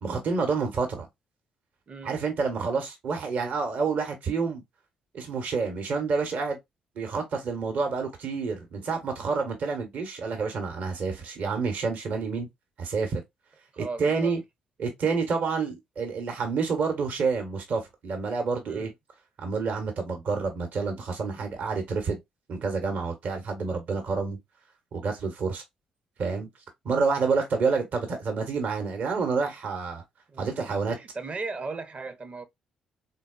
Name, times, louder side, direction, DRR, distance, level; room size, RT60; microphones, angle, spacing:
voice 1, 0.0-1.1 2.0-4.6 5.1-6.6 6.9-12.5 12.8-13.2 13.8-14.4 14.8-18.9 19.4-22.2 22.5-24.4 24.9-25.6 26.2-26.5 26.8-30.0 30.4-30.9, right 4 dB, 55° right, 1.1 m, -28 dB
voice 2, 1.9-2.2 13.7-14.3 18.7-18.9 30.3-32.4, right 3 dB, 35° right, 0.8 m, -37 dB
3.7 x 2.2 x 2.4 m
figure-of-eight pair, 45°, 3 cm